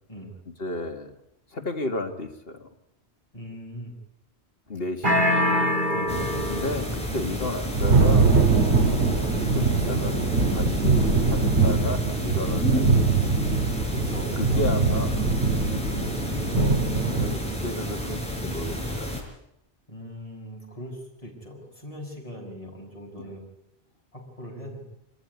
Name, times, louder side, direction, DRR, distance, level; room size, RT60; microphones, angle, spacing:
voice 1, 0.6-1.1 1.5-2.7 4.7-5.7 6.5-8.3 9.1-13.3 14.4-15.2 17.1-19.2 23.2-23.3, left 2 dB, 60° left, 5 dB, 2.3 m, -33 dB
voice 2, 3.3-3.9 5.8-6.5 13.9-14.6 19.9-23.4 24.1-24.8, equal, 30° left, -1 dB, 6.9 m, -40 dB
sound 1, 5.0-7.0, left 1 dB, 45° right, 3.2 m, -24 dB
sound 2, 6.1-19.2, equal, 5° left, 5.0 m, -31 dB
Thunder, 7.2-17.4, right 4 dB, 75° right, 2.3 m, -22 dB
26.0 x 14.5 x 9.8 m, 0.81 s
omnidirectional pair, 1.1 m